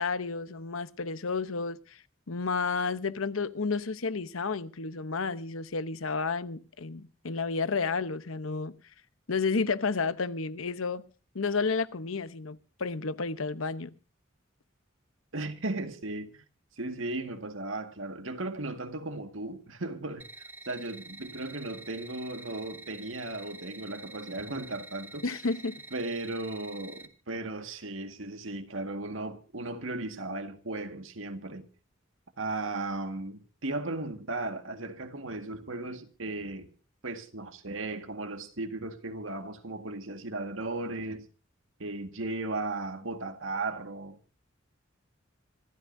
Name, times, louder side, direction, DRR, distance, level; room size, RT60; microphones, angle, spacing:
voice 1, 0.0-2.0 2.3-8.8 9.3-11.0 11.3-13.9 25.2-25.8, left 4 dB, 90° left, 0.9 m, -31 dB
voice 2, 15.3-16.4 16.8-20.3 20.7-25.3 25.9-31.7 32.4-36.7 37.0-41.3 41.8-44.2, right 2 dB, 80° right, 1.8 m, -36 dB
sound 1, 20.2-27.0, right 3 dB, 10° right, 1.4 m, -47 dB
26.5 x 13.5 x 2.7 m
head